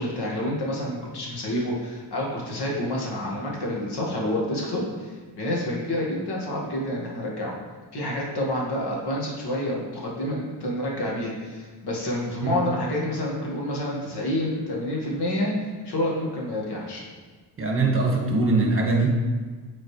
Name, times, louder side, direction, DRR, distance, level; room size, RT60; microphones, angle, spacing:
voice 1, 0.0-7.5 7.9-17.0, left 1 dB, 60° left, -3 dB, 2.0 m, -28 dB
voice 2, 17.6-19.1, right 3 dB, 30° right, -1 dB, 1.5 m, -22 dB
7.6 x 4.2 x 3.3 m, 1.4 s
cardioid pair, 80°, 43 cm